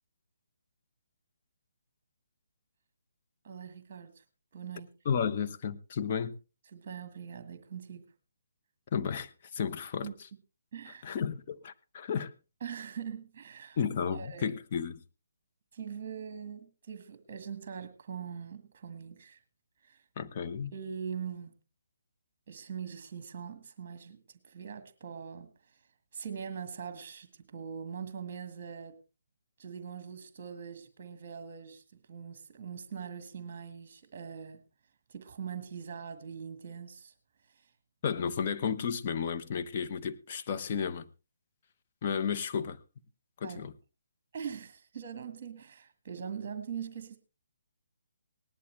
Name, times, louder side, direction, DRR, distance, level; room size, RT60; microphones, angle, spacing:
voice 1, 3.4-4.2 4.5-4.9 6.7-8.1 10.0-10.1 10.7-11.1 12.6-13.8 14.1-14.5 15.7-19.4 19.8-20.0 20.7-21.6 22.5-25.5 26.1-29.0 29.6-31.8 32.1-34.6 35.1-37.1 37.5-37.7 43.4-43.7 44.3-47.2, right 7 dB, 35° right, 1.7 m, -42 dB
voice 2, 5.0-6.3 8.9-10.1 10.9-12.3 13.8-15.0 20.2-20.7 38.0-41.1 42.0-42.8 43.4-43.7, left 7 dB, 40° left, 1.0 m, -33 dB
18.5 x 11.0 x 3.3 m
hypercardioid pair, 155°, 0 cm